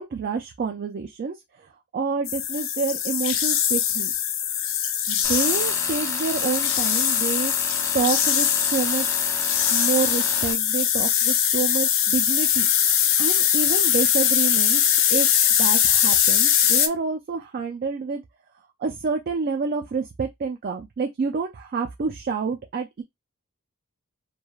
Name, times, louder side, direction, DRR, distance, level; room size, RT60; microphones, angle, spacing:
voice 1, 0.0-4.1 5.1-7.5 7.9-9.3 9.7-12.7 13.2-18.2 18.8-23.0, right 5 dB, 45° right, 0.3 m, -28 dB
sound 1, 2.3-16.9, left 9 dB, 70° left, 0.4 m, -21 dB
Tools, 5.2-10.5, left 2 dB, 15° left, 0.5 m, -33 dB
3.1 x 2.2 x 2.3 m
head